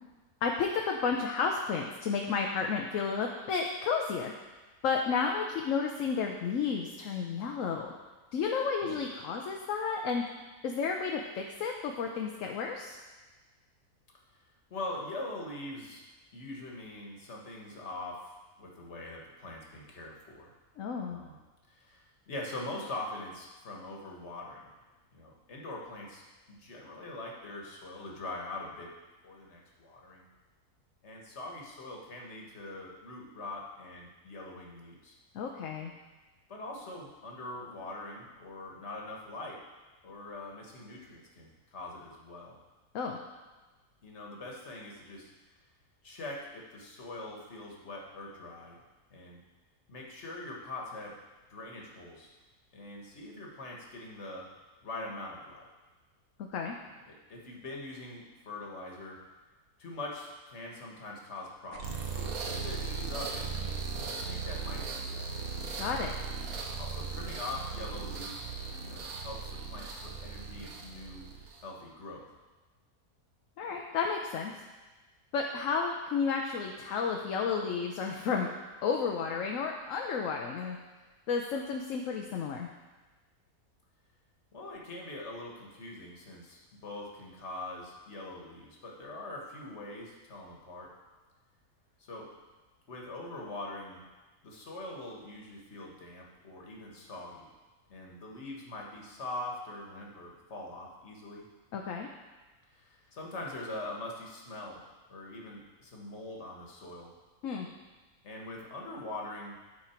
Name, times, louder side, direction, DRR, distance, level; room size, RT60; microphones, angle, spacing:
voice 1, 0.4-4.3 4.8-7.9 8.3-10.2 10.6-13.0 20.8-21.2 35.3-35.9 42.9-43.2 56.5-56.8 65.8-66.1 73.6-74.5 75.3-78.5 78.8-80.8 81.3-82.7 101.7-102.1 107.4-107.7, left 5 dB, 65° left, 1 dB, 1.0 m, -32 dB
voice 2, 14.7-16.0 16.3-20.5 21.1-21.4 21.7-24.7 25.1-26.2 26.5-28.9 29.2-30.3 31.0-35.1 36.5-39.6 40.0-42.6 44.0-45.3 46.0-48.8 49.1-49.4 49.9-51.2 51.5-52.3 52.7-54.5 54.8-55.7 57.1-59.2 59.8-63.7 64.3-65.2 66.8-68.5 68.8-71.3 71.6-72.3 84.5-90.9 92.0-92.3 92.9-94.0 94.4-97.5 97.9-101.4 102.7-104.8 105.1-107.1 108.2-109.6, left 2 dB, 45° left, -1 dB, 1.7 m, -43 dB
sound 1, 61.7-71.7, right 4 dB, 65° right, 1.4 m, -38 dB
13.0 x 4.4 x 4.4 m, 1.2 s
omnidirectional pair, 1.6 m